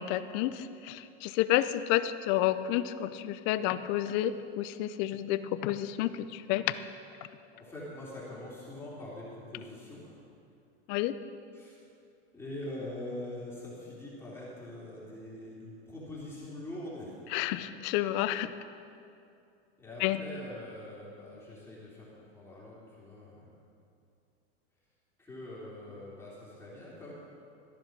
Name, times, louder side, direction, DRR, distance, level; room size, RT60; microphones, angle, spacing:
voice 1, 0.0-6.8 10.9-11.2 17.3-18.5 20.0-20.2, left 13 dB, 40° left, 13 dB, 0.6 m, -30 dB
voice 2, 7.5-10.2 11.5-11.8 12.3-17.1 19.8-23.6 25.2-27.1, left 1 dB, 10° left, -7 dB, 3.1 m, -43 dB
14.5 x 10.5 x 6.0 m, 2.5 s
supercardioid pair, 145°, 31 cm